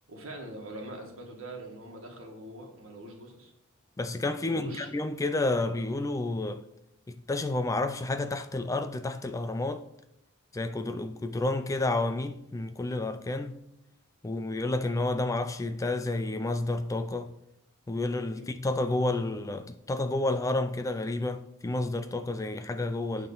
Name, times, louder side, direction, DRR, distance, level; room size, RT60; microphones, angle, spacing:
voice 1, 0.1-3.5 4.4-4.9 18.4-18.5 23.2-23.3, right 1 dB, 65° right, 1.8 m, -43 dB
voice 2, 4.0-6.6 7.1-9.9 10.5-13.6 14.2-17.3 17.9-23.3, left 2 dB, 15° left, 0.3 m, -30 dB
9.1 x 3.7 x 5.5 m
head